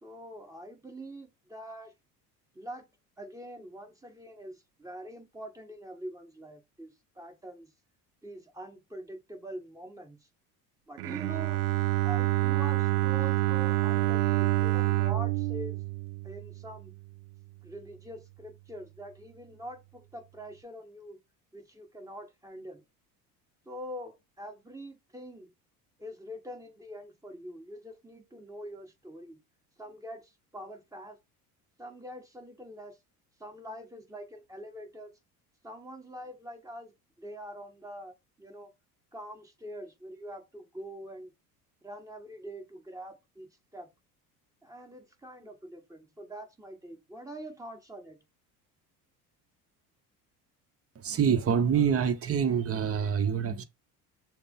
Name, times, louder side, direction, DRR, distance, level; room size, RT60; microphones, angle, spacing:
voice 1, 0.0-1.9 2.5-2.9 3.2-7.7 8.2-10.2 10.9-11.6 12.0-15.8 16.2-16.9 17.6-21.2 21.5-22.8 23.6-25.5 26.0-29.4 29.8-31.2 31.8-33.0 33.4-35.1 35.6-36.9 37.2-38.7 39.1-41.3 41.8-43.9 44.6-48.2, equal, 5° right, 1.5 m, -44 dB
Bowed string instrument, 11.0-16.9, right 17 dB, 75° right, 0.5 m, -27 dB
voice 2, 51.0-53.6, right 7 dB, 30° right, 0.8 m, -26 dB
6.4 x 2.2 x 3.8 m
hypercardioid pair, 70°, 46 cm